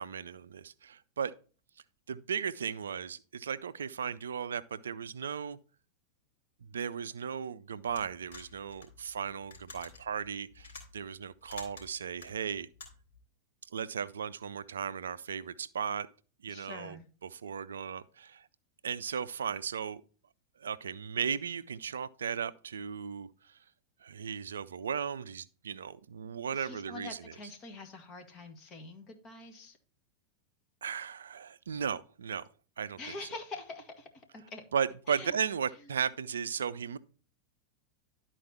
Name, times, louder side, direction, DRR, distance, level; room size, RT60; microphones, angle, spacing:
voice 1, 0.0-1.3 2.1-5.6 6.7-12.7 13.7-16.1 16.4-18.5 18.8-20.0 20.6-23.6 24.0-27.3 30.8-32.5 32.8-33.0 34.7-37.0, right 7 dB, 65° right, 0.4 m, -36 dB
sound 1, 7.9-13.2, left 3 dB, 60° left, 3.4 m, -51 dB
voice 2, 16.5-17.1 26.5-29.8 33.0-34.6 35.1-35.3, left 3 dB, 30° left, 2.0 m, -45 dB
11.5 x 4.5 x 4.3 m
figure-of-eight pair, 90°, 0 cm